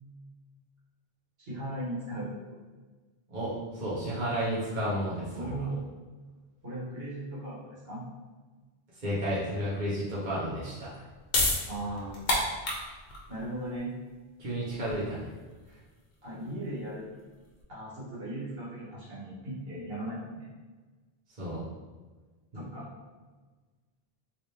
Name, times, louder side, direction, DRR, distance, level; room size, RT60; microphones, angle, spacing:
voice 1, 1.4-2.3 5.3-5.8 6.6-8.0 11.7-12.3 13.3-13.9 16.2-17.1 17.7-20.5 22.5-22.9, right 1 dB, 70° right, -9 dB, 1.5 m, -37 dB
voice 2, 3.3-5.6 9.0-10.9 14.4-15.3 21.4-21.6 22.5-22.6, equal, 50° right, -9 dB, 1.1 m, -32 dB
sound 1, 10.9-17.6, left 1 dB, 70° left, 1.0 m, -33 dB
3.2 x 3.1 x 2.8 m, 1.3 s
omnidirectional pair, 1.0 m